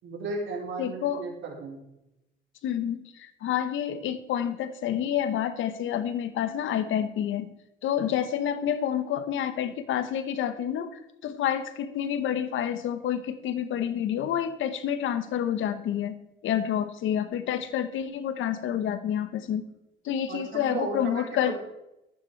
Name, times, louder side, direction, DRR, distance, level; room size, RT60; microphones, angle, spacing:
voice 1, 0.0-1.8 20.3-21.6, right 3 dB, 75° right, -1 dB, 4.3 m, -35 dB
voice 2, 0.8-1.2 2.6-7.5 7.8-10.9 11.2-16.2 16.4-19.6 20.0-21.5, left 9 dB, 80° left, 11 dB, 1.2 m, -28 dB
13.5 x 9.1 x 4.7 m, 0.89 s
cardioid pair, 90°, 20 cm